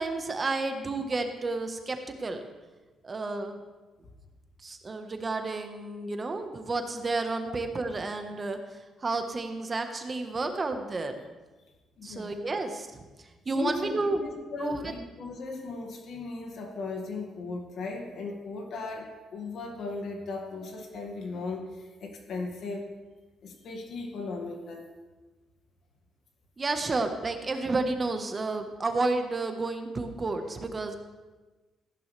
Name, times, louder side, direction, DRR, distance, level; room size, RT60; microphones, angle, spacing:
voice 1, 0.0-2.4 3.0-3.6 4.6-11.1 12.0-14.2 14.6-14.9 26.6-31.0, right 3 dB, 30° right, 6 dB, 1.2 m, -31 dB
voice 2, 12.0-12.3 13.5-22.9 23.4-24.9, left 3 dB, 65° left, 2 dB, 2.0 m, -37 dB
15.0 x 11.0 x 3.4 m, 1.2 s
cardioid pair, 90°, 0 cm